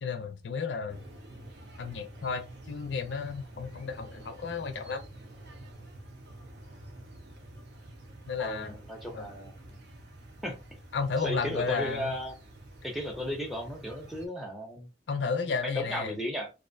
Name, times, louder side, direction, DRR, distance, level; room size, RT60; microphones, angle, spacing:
voice 1, 0.0-1.0 1.8-5.1 8.3-8.7 9.1-9.3 10.9-12.1 15.1-16.2, left 5 dB, 85° left, 0.5 m, -33 dB
sound 1, 0.9-14.3, right 1 dB, 75° right, 0.6 m, -48 dB
voice 2, 8.4-9.5 10.4-10.6 11.2-12.3 12.8-14.9 15.6-16.5, left 1 dB, ahead, 0.5 m, -35 dB
2.5 x 2.1 x 2.5 m
head